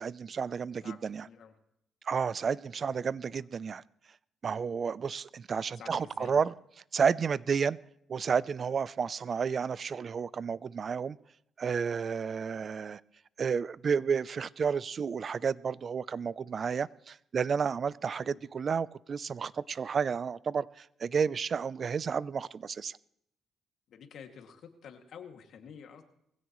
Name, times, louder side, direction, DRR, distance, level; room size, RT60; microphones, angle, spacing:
voice 1, 0.0-1.3 2.0-3.8 4.4-6.5 6.9-7.8 8.1-11.2 11.6-13.0 13.4-23.0, right 6 dB, 45° right, 20 dB, 0.5 m, -31 dB
voice 2, 0.8-1.5 2.8-3.2 5.8-6.4 18.2-18.4 23.9-26.0, left 7 dB, 70° left, 4 dB, 2.3 m, -50 dB
21.5 x 16.0 x 3.1 m, 0.77 s
cardioid pair, 90°, 0 cm